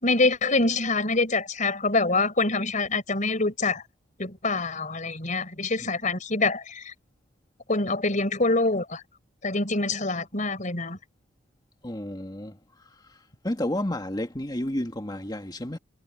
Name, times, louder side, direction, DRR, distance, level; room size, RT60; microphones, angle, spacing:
voice 1, 0.0-3.8 4.2-6.9 7.7-9.0 9.4-11.0, left 3 dB, 40° left, 4.6 m, -25 dB
voice 2, 11.8-12.6 13.4-15.8, left 1 dB, 20° left, 1.9 m, -31 dB
head